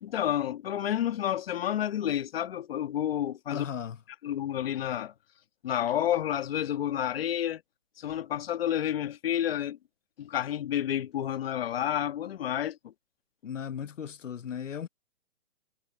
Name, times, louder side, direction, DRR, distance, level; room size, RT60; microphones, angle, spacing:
voice 1, 0.0-3.7 4.2-5.1 5.6-7.6 8.0-9.8 10.2-12.9, left 11 dB, 50° left, 1.6 m, -30 dB
voice 2, 3.5-4.0 13.4-14.9, left 8 dB, 85° left, 1.0 m, -36 dB
hypercardioid pair, 150°, 37 cm